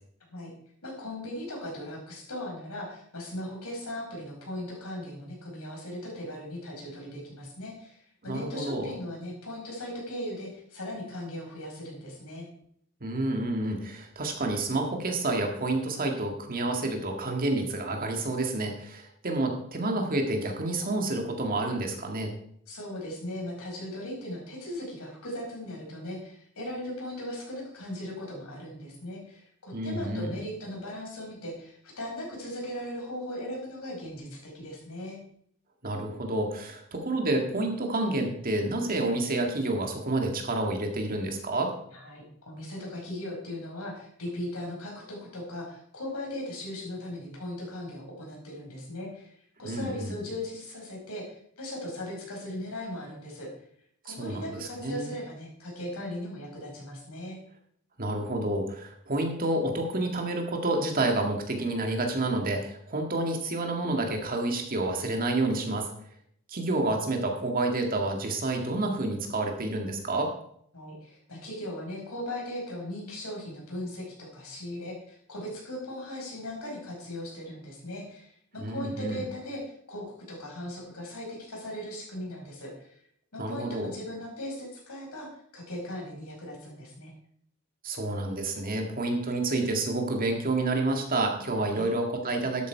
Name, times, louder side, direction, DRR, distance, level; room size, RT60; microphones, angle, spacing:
voice 1, 0.8-12.4 22.7-35.2 41.9-53.5 54.0-57.4 70.7-83.0 83.3-87.1 91.6-91.9, left 1 dB, 85° left, -2 dB, 5.0 m, -38 dB
voice 2, 8.3-8.9 13.0-22.3 29.7-30.3 35.8-41.7 49.6-50.1 54.1-55.1 58.0-65.9 66.5-70.3 78.6-79.2 83.4-83.9 87.8-92.7, right 2 dB, 40° right, 3 dB, 1.9 m, -29 dB
12.0 x 8.5 x 4.6 m, 0.65 s
head